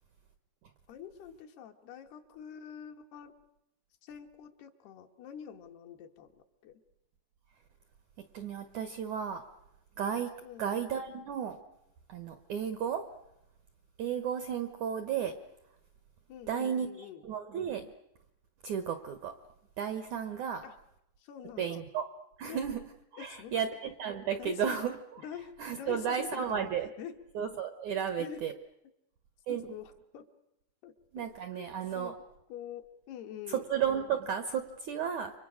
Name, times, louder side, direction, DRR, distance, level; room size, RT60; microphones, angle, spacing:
voice 1, 0.9-3.3 4.0-6.8 10.4-10.7 16.3-17.2 20.6-20.7 21.2-21.8 22.5-22.6 23.2-23.6 24.4-24.7 25.2-26.7 27.0-27.2 28.2-28.4 29.5-30.3 30.8-31.7 32.0-32.1 32.5-33.7, left 9 dB, 70° left, 4 dB, 3.3 m, -45 dB
voice 2, 8.3-9.4 10.0-10.3 10.6-11.6 12.1-13.0 14.0-15.3 16.5-16.9 17.2-17.9 18.6-19.3 19.8-20.6 21.6-22.0 22.4-22.8 23.1-25.0 25.6-26.9 27.4-28.5 29.5-29.7 31.1-32.1 33.5-35.3, right 8 dB, 70° right, 8 dB, 1.8 m, -33 dB
30.0 x 25.0 x 6.3 m, 0.82 s
omnidirectional pair, 4.9 m